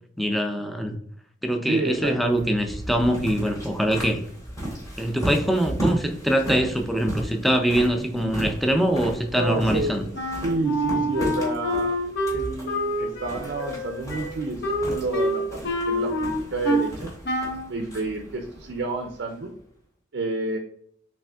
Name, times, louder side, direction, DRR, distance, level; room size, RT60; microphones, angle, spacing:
voice 1, 0.2-1.0 1.4-4.2 5.0-10.1, equal, ahead, 4 dB, 0.4 m, -23 dB
voice 2, 1.7-2.4 9.3-10.0 10.4-12.0 12.3-17.1 17.7-19.5 20.1-20.6, right 2 dB, 60° right, 4 dB, 0.5 m, -30 dB
sound 1, 1.9-19.6, right 1 dB, 20° left, 1.7 m, -35 dB
Wind instrument woodwind instrument, 10.1-16.9 17.2-17.7, equal, 60° left, 0.8 m, -27 dB
4.8 x 3.5 x 2.3 m, 0.64 s
head